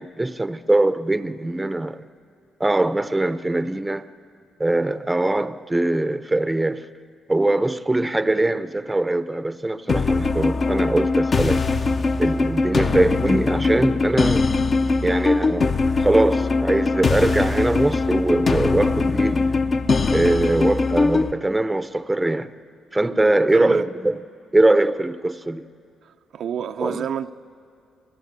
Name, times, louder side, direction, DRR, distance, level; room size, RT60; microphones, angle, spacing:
voice 1, 0.0-2.0 2.6-4.1 4.6-6.9 7.3-11.6 12.2-14.4 15.0-19.4 20.1-22.5 22.9-24.2 24.5-25.6 26.8-27.0, right 2 dB, 10° right, 0.7 m, -22 dB
sound 1, 9.9-21.3, left 3 dB, 40° left, 0.8 m, -21 dB
voice 2, 23.5-23.9 26.3-27.3, right 8 dB, 65° right, 0.6 m, -29 dB
28.5 x 18.5 x 8.2 m
cardioid pair, 90°, 0 cm